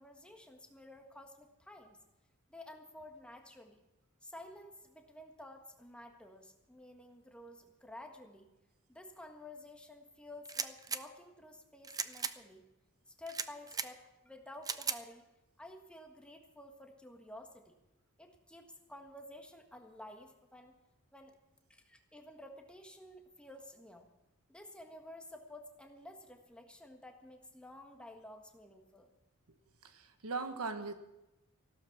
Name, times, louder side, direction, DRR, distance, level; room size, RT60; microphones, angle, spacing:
voice 1, 0.0-2.0 2.5-3.8 4.2-8.5 8.9-12.6 13.2-15.3 15.6-17.8 18.2-20.7 21.1-21.3 21.7-24.1 24.5-29.1, left 1 dB, 5° left, 3 dB, 1.5 m, -52 dB
sound 1, 10.4-11.0 11.8-12.3 13.3-13.9 14.6-15.0, right 5 dB, 15° right, 0.5 m, -37 dB
voice 2, 29.8-30.9, right 4 dB, 70° right, 8 dB, 1.3 m, -39 dB
15.0 x 12.5 x 6.1 m, 0.94 s
head